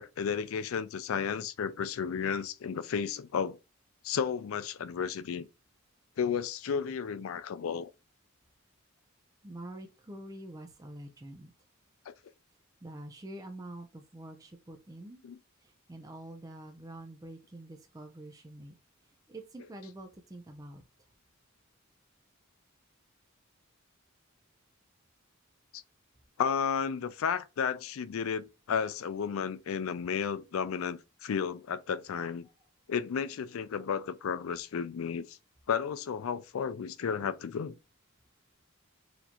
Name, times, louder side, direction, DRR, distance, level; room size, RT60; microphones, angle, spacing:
voice 1, 0.0-3.6 4.0-5.5 6.2-7.9 12.1-12.2 15.2-15.4 25.7-25.8 26.4-32.5 32.9-35.4 35.7-37.8, left 7 dB, 80° left, 0.4 m, -33 dB
voice 2, 9.4-11.5 12.8-15.2 15.9-18.8 19.3-20.8, right 1 dB, 15° right, 0.4 m, -46 dB
4.2 x 2.6 x 2.8 m
head